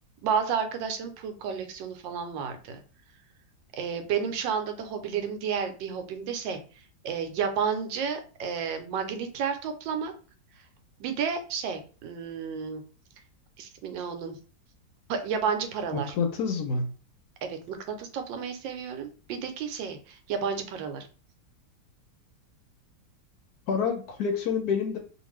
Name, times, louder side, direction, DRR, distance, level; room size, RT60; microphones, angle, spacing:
voice 1, 0.2-2.8 3.7-6.6 7.0-10.1 11.0-12.8 13.6-14.4 15.1-16.1 17.4-21.1, right 6 dB, 85° right, 7 dB, 1.3 m, -31 dB
voice 2, 15.9-16.9 23.7-25.0, left 5 dB, 70° left, 4 dB, 1.0 m, -28 dB
2.9 x 2.5 x 3.1 m, 0.37 s
omnidirectional pair, 2.0 m